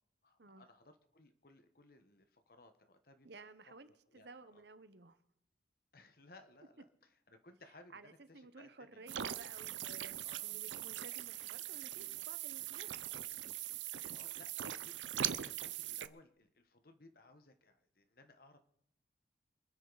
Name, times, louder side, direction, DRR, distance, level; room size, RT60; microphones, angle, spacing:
voice 1, 0.2-3.5 4.1-4.6 5.9-9.1 10.2-10.6 13.8-18.6, left 2 dB, 50° left, 8 dB, 1.2 m, -62 dB
voice 2, 3.2-5.2 7.9-12.9, right 3 dB, 65° right, 12 dB, 1.1 m, -55 dB
sound 1, 9.1-16.1, right 11 dB, 90° right, 0.7 m, -41 dB
26.5 x 10.0 x 4.1 m, 0.75 s
head